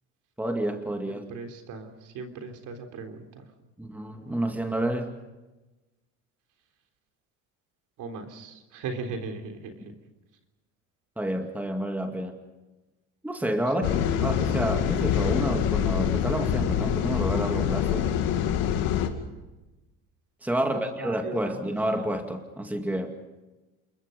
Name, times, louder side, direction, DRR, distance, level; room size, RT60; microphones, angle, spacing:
voice 1, 0.4-1.2 3.8-5.1 11.2-12.4 13.2-18.1 20.4-23.1, right 1 dB, 5° right, 4 dB, 2.3 m, -29 dB
voice 2, 1.1-3.5 8.0-9.7 13.8-14.2 20.6-21.7, right 4 dB, 60° right, 5 dB, 3.7 m, -38 dB
sound 1, 13.8-19.1, left 9 dB, 75° left, 2.5 m, -25 dB
28.5 x 22.0 x 5.4 m, 1.1 s
cardioid pair, 110°, 35 cm